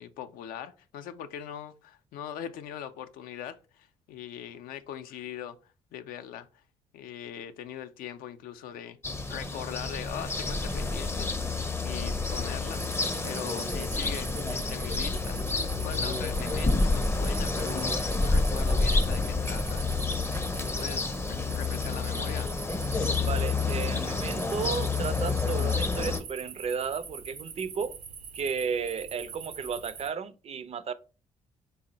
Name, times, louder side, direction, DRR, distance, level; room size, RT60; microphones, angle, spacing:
voice 1, 0.0-6.6 6.9-9.0 9.3-11.3 11.8-17.9 18.2-19.9 20.6-22.5 22.9-23.2, left 10 dB, 80° left, 0.4 m, -41 dB
sound 1, 9.0-26.2, left 3 dB, 15° left, 0.5 m, -29 dB
sound 2, 12.7-30.1, right 6 dB, 85° right, 0.7 m, -44 dB
voice 2, 23.3-27.9 28.3-30.9, right 6 dB, 45° right, 0.4 m, -33 dB
3.6 x 2.0 x 3.8 m
supercardioid pair, 60°, 15 cm